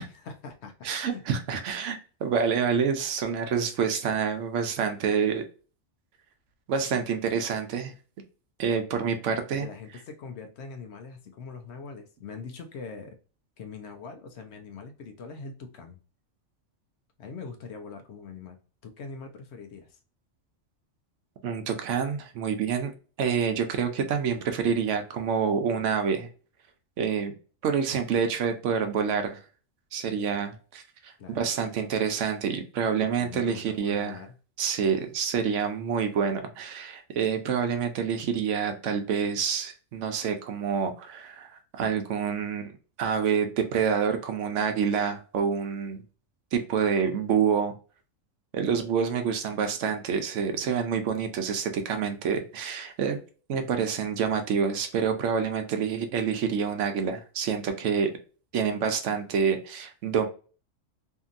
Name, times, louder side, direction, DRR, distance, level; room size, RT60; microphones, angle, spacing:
voice 1, 0.0-1.2 9.6-13.2 13.6-16.0 17.2-20.0 31.2-31.4 33.0-34.3, left 5 dB, 65° left, 5 dB, 0.8 m, -42 dB
voice 2, 0.8-5.4 6.7-7.9 8.6-9.7 21.4-22.9 23.2-26.3 27.0-27.3 27.6-29.4 29.9-34.2 34.6-42.7 43.0-46.0 46.5-47.8 48.5-53.2 53.5-58.1 58.5-60.3, right 6 dB, 75° right, 7 dB, 0.9 m, -27 dB
2.8 x 2.6 x 2.4 m, 0.36 s
omnidirectional pair, 1.3 m